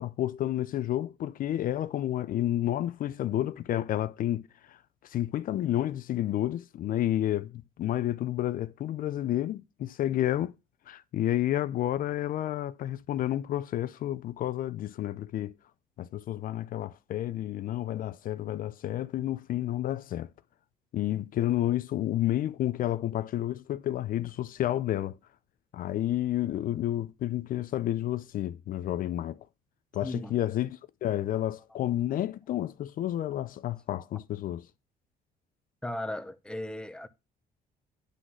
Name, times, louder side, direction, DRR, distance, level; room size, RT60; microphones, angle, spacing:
voice 1, 0.0-4.8 5.0-10.5 10.9-15.5 16.0-20.3 20.9-25.2 25.7-29.4 29.9-34.6, left 13 dB, 55° left, 0.5 m, -30 dB
voice 2, 30.0-30.4 35.8-37.1, left 1 dB, 5° left, 0.8 m, -36 dB
10.0 x 3.9 x 6.2 m
cardioid pair, 110°, 17 cm